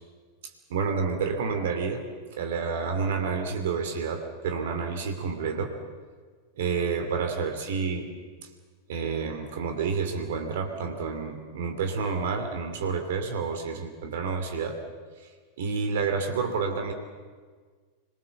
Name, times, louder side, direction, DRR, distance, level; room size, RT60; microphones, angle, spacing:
voice 1, 0.7-5.8 6.6-8.1 8.9-14.8 15.6-16.9, right 5 dB, 55° right, 5 dB, 2.8 m, -29 dB
26.0 x 23.5 x 7.2 m, 1.5 s
figure-of-eight pair, 90°, 0 cm